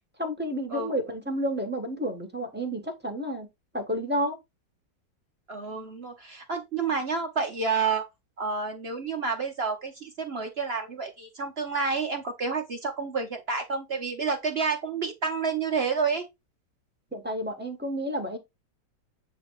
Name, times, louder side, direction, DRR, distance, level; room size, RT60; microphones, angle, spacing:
voice 1, 0.2-3.5 3.7-4.4 17.1-18.4, equal, 5° right, 1.1 m, -30 dB
voice 2, 5.5-8.1 8.4-16.2, right 5 dB, 50° right, 0.8 m, -29 dB
8.2 x 2.8 x 4.6 m
omnidirectional pair, 2.0 m